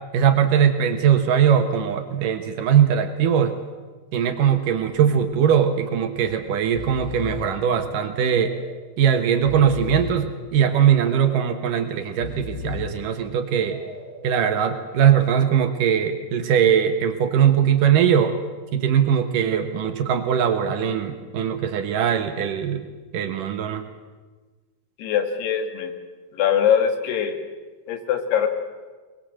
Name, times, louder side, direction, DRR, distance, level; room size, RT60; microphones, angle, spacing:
voice 1, 0.1-3.6 4.1-8.5 9.0-13.8 14.2-18.4 18.7-22.9 23.1-23.8, right 8 dB, 65° right, 7 dB, 2.5 m, -20 dB
Breathing, 4.5-4.9 5.2-5.3 6.2-6.4 6.6-7.6 8.2-8.8 9.3-10.3 10.9-11.5 12.1-13.1 13.7-14.3, left 4 dB, 60° left, 4.3 m, -36 dB
voice 2, 25.0-25.9 26.3-27.3 27.9-28.5, left 8 dB, 80° left, 7 dB, 3.9 m, -22 dB
23.0 x 21.0 x 7.6 m, 1.3 s
omnidirectional pair, 4.6 m